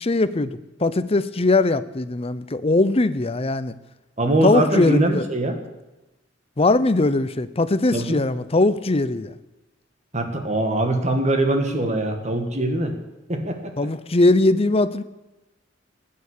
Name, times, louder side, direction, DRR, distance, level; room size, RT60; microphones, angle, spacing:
voice 1, 0.0-3.8 4.4-5.3 6.6-9.4 13.8-15.0, left 2 dB, 30° left, 14 dB, 0.7 m, -20 dB
voice 2, 4.2-5.6 7.9-8.2 10.1-12.9 13.3-13.7, right 1 dB, 40° right, 5 dB, 2.0 m, -22 dB
16.0 x 9.6 x 8.5 m, 1.0 s
head